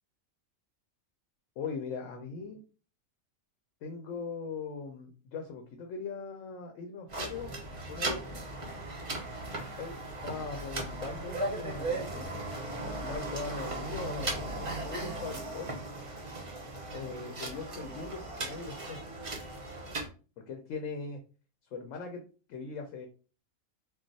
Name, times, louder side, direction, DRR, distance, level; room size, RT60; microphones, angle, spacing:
voice 1, 1.6-2.6 3.8-8.4 9.8-12.3 12.8-15.8 16.9-19.1 20.5-21.2 21.7-22.2 22.5-23.1, left 4 dB, 75° left, 4 dB, 0.9 m, -40 dB
sound 1, 7.1-20.1, right 2 dB, 40° right, 0.5 m, -37 dB
2.3 x 2.2 x 3.9 m, 0.36 s
omnidirectional pair, 1.4 m